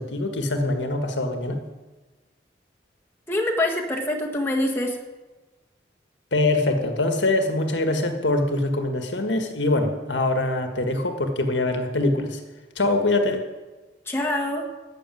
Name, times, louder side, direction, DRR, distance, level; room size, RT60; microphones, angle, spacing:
voice 1, 0.0-1.6 6.3-12.4 12.8-13.4, left 2 dB, 90° left, 5 dB, 1.7 m, -23 dB
voice 2, 3.3-5.0 14.1-14.6, left 1 dB, 15° left, -1 dB, 1.6 m, -25 dB
13.5 x 6.8 x 9.2 m, 1.2 s
head